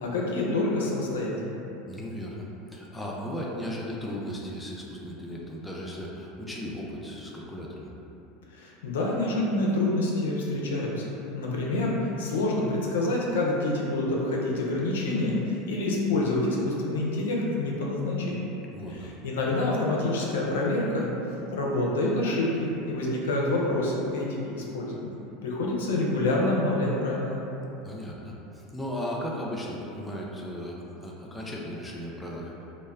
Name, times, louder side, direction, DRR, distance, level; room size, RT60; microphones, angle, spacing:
voice 1, 0.0-1.6 8.5-11.0 11.3-18.5 18.9-21.1 21.5-25.2 25.4-27.4, left 2 dB, 90° left, -3 dB, 0.4 m, -27 dB
voice 2, 1.9-7.9 18.7-19.1 27.8-32.6, equal, 5° left, -4 dB, 0.4 m, -36 dB
2.1 x 2.1 x 3.4 m, 2.9 s
supercardioid pair, 110°, 0 cm